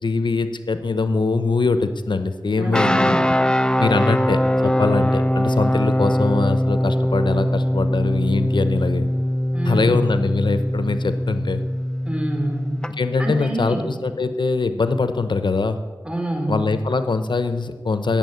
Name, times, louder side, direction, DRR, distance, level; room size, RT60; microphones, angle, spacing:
voice 1, 0.0-3.2 3.8-9.1 9.6-11.6 13.0-15.8 16.5-18.2, left 3 dB, 85° left, 10 dB, 0.8 m, -22 dB
voice 2, 2.6-3.2 9.5-10.0 12.0-12.7 13.2-13.9 16.0-16.6, right 1 dB, 15° right, 1 dB, 4.5 m, -26 dB
sound 1, 2.7-12.9, equal, 10° left, 0.7 m, -21 dB
17.5 x 7.2 x 9.3 m, 1.5 s
wide cardioid pair, 45°, 8 cm